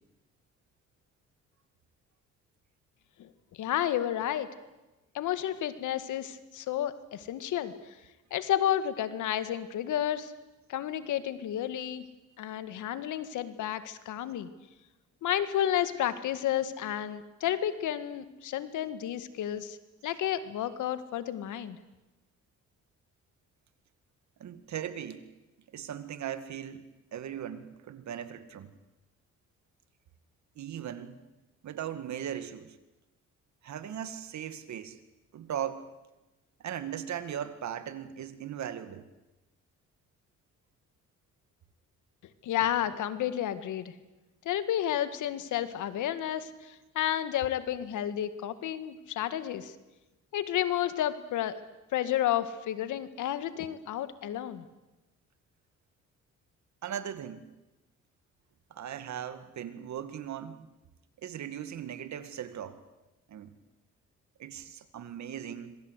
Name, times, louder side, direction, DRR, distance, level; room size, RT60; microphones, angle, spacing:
voice 1, 3.6-4.5 5.1-7.7 8.3-10.3 10.7-12.0 12.4-14.5 15.2-19.8 20.0-21.8 42.4-43.9 44.5-49.7 50.3-51.6 51.9-54.6, left 11 dB, 80° left, 12 dB, 1.8 m, -31 dB
voice 2, 24.4-25.2 25.7-26.8 27.1-28.7 30.6-31.2 31.6-32.8 33.6-35.0 35.3-35.9 36.6-39.0 56.8-57.5 58.7-60.7 61.2-62.8 63.3-63.5 64.4-65.8, right 9 dB, 65° right, 11 dB, 2.2 m, -38 dB
26.0 x 23.0 x 8.3 m, 1.1 s
cardioid pair, 90°, 30 cm